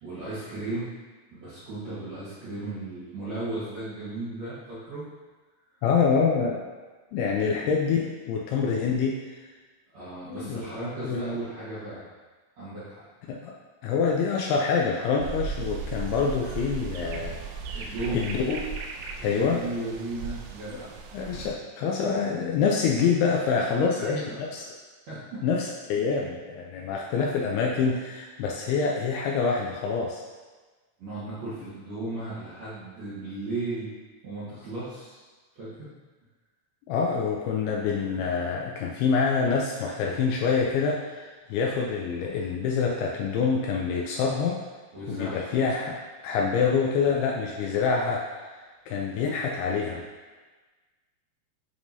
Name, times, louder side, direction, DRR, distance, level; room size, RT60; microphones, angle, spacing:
voice 1, 0.0-0.9 1.3-5.1 7.4-7.6 9.9-12.0 12.6-13.0 17.7-18.3 19.1-20.9 21.2-21.6 23.5-24.3 24.6-24.7 25.1-25.4 31.0-33.9 34.2-35.2 35.5-35.9 44.9-45.5, right 2 dB, 60° right, -12 dB, 1.8 m, -35 dB
voice 2, 5.8-6.6 7.1-9.2 10.3-10.7 11.0-11.4 13.3-13.5 13.8-17.4 17.7-18.6 19.2-19.6 21.1-24.2 24.5-24.6 25.4-30.2 36.9-44.6 45.1-46.0 46.2-48.2 48.9-50.0, left 5 dB, 80° left, -2 dB, 2.4 m, -26 dB
sound 1, 15.2-21.5, right 5 dB, 85° right, 2.2 m, -36 dB
9.7 x 3.6 x 2.7 m, 1.3 s
omnidirectional pair, 4.9 m